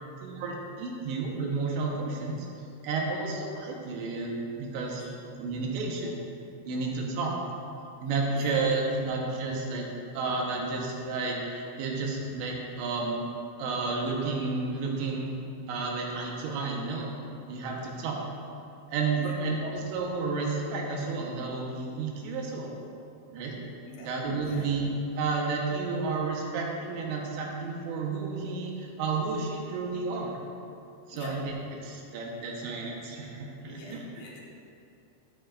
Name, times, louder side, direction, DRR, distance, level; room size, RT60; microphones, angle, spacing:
voice 1, 0.2-2.3 2.8-6.1 6.6-7.4 8.0-9.9 10.1-13.2 13.6-15.3 15.7-17.1 17.5-18.2 18.9-22.7 23.3-23.6 24.0-24.8 25.1-30.4 31.1-31.5 31.8-34.1, right 4 dB, 75° right, -1 dB, 3.2 m, -31 dB
voice 2, 33.6-34.4, left 2 dB, 65° left, -4 dB, 2.7 m, -45 dB
14.0 x 9.5 x 2.6 m, 2.5 s
omnidirectional pair, 5.6 m